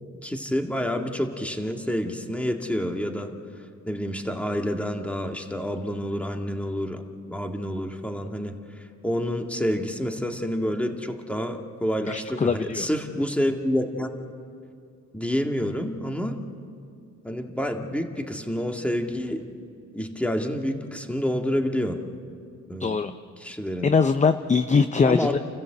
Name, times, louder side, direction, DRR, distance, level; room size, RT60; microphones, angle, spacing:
voice 1, 0.2-3.3 3.9-7.0 7.3-14.1 15.1-16.4 17.2-19.5 19.9-22.0 22.7-23.0 23.4-23.9 25.0-25.4, equal, 5° left, 3 dB, 2.1 m, -28 dB
voice 2, 12.0-12.9 22.8-23.1 23.8-25.4, left 5 dB, 25° left, 10 dB, 0.7 m, -22 dB
30.0 x 14.5 x 8.0 m, 2.4 s
cardioid pair, 90°, 30 cm